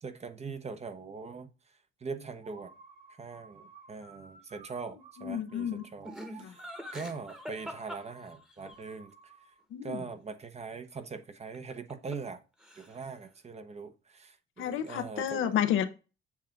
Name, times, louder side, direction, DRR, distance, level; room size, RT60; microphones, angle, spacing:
voice 1, 0.0-1.5 2.0-2.7 3.2-6.6 6.9-9.1 9.8-12.4 12.8-15.5, right 4 dB, 35° right, 0.9 m, -42 dB
sound 1, 2.4-9.6, right 4 dB, 70° right, 2.9 m, -55 dB
voice 2, 5.2-5.8 6.4-6.5 9.7-10.0 14.6-15.8, left 10 dB, 85° left, 0.7 m, -31 dB
Laughter, 6.0-8.7 11.5-12.3 12.6-13.2, equal, 5° right, 1.1 m, -44 dB
7.2 x 2.5 x 5.7 m
cardioid pair, 90°, 20 cm